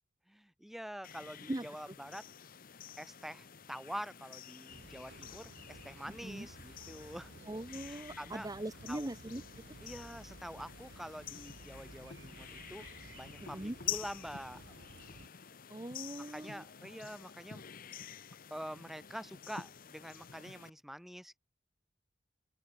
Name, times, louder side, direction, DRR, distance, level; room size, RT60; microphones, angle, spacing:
voice 1, 0.3-2.3 3.0-7.3 7.9-8.5 8.9-9.1 9.8-12.9 13.1-14.6 16.3-17.6 18.5-21.4, equal, ahead, 0.4 m, -46 dB
sound 1, 1.0-20.7, left 9 dB, 55° left, 0.9 m, -48 dB
voice 2, 1.5-1.9 6.1-6.5 7.5-9.4 13.4-13.8 15.7-16.6, right 1 dB, 20° right, 0.9 m, -41 dB
sound 2, 4.7-15.3, right 2 dB, 85° right, 1.3 m, -55 dB
head